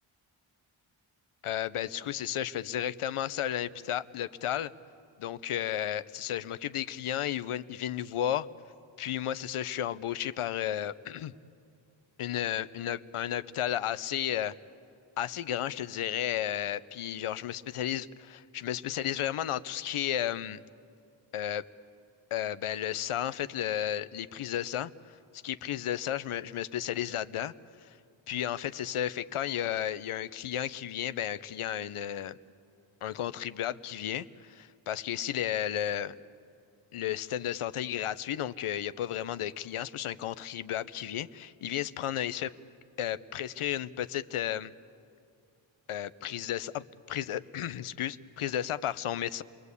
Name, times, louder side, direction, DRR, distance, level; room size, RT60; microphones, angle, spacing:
voice 1, 1.4-4.7 5.2-8.5 9.0-11.3 12.2-14.5 15.2-20.6 21.3-21.6 22.3-24.9 25.3-27.5 28.3-32.4 33.0-36.1 36.9-42.5 43.0-44.7 45.9-49.4, left 11 dB, 85° left, 15 dB, 0.7 m, -33 dB
28.5 x 21.5 x 8.3 m, 2.4 s
cardioid pair, 55°, 50 cm